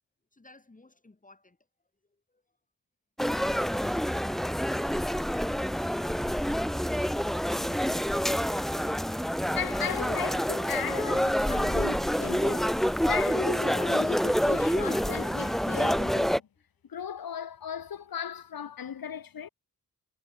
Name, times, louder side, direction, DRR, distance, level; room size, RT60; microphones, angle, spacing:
voice 1, 0.3-1.6 2.0-2.6, left 2 dB, 25° left, 3.4 m, -60 dB
sound 1, 3.2-16.4, equal, ahead, 0.5 m, -27 dB
voice 2, 9.5-16.5 16.9-19.5, left 8 dB, 80° left, 2.4 m, -36 dB
wide cardioid pair, 90°, 35 cm